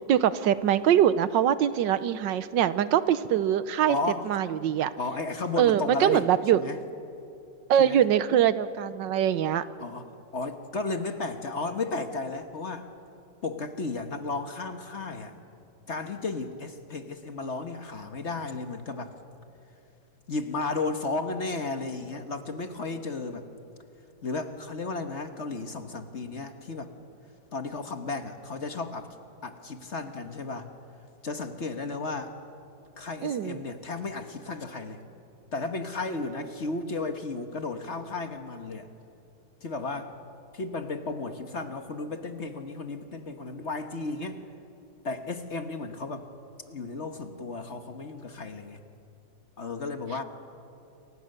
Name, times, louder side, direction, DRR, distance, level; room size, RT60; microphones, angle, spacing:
voice 1, 0.1-4.0 4.2-4.9 5.6-6.6 7.7-9.6 33.2-33.6, right 10 dB, 80° right, 14 dB, 1.4 m, -23 dB
voice 2, 3.9-4.3 5.0-6.2 6.5-6.8 7.8-8.0 9.8-10.1 10.3-12.9 13.4-15.3 15.9-19.1 20.3-23.5 24.2-26.9 27.5-29.1 29.4-30.7 31.2-32.3 33.0-35.0 35.5-38.9 39.6-40.1 40.5-44.4 45.0-46.3 46.7-48.8 49.6-50.2, left 3 dB, 40° left, 7 dB, 1.4 m, -34 dB
28.5 x 24.5 x 6.7 m, 2.8 s
omnidirectional pair, 2.0 m